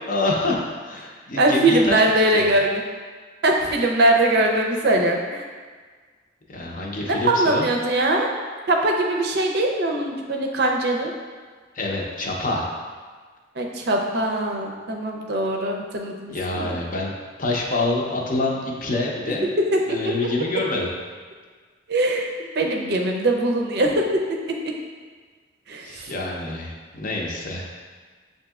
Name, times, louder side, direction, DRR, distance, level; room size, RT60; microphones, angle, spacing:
voice 1, 0.1-2.0 2.3-2.5 6.5-7.7 11.7-12.6 16.3-19.5 19.9-20.9 25.8-27.7, left 2 dB, 45° left, -1 dB, 0.6 m, -26 dB
voice 2, 1.4-2.8 3.4-5.4 7.0-8.3 8.7-11.1 13.6-16.8 19.3-20.1 21.9-24.0 25.7-26.1, right 1 dB, 60° right, 1 dB, 0.5 m, -21 dB
7.1 x 2.7 x 2.3 m, 1.5 s
head